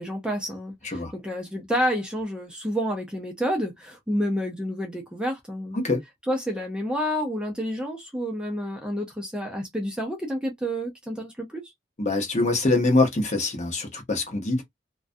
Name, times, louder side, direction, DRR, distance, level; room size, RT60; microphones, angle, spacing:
voice 1, 0.0-5.8 6.3-11.6, equal, 5° right, 0.5 m, -29 dB
voice 2, 12.0-14.6, left 2 dB, 40° left, 0.8 m, -24 dB
2.4 x 2.1 x 2.5 m
head